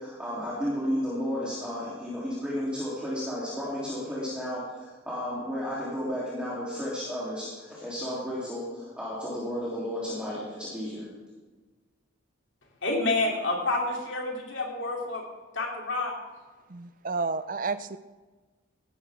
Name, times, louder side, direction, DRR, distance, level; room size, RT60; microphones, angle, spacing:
voice 1, 0.0-4.6 5.0-11.0, equal, 5° right, -9 dB, 3.0 m, -33 dB
voice 2, 12.8-15.2 15.5-16.1, left 2 dB, 65° left, -1 dB, 3.0 m, -28 dB
voice 3, 16.7-18.0, right 4 dB, 40° right, 13 dB, 0.5 m, -31 dB
16.0 x 13.0 x 3.5 m, 1.3 s
head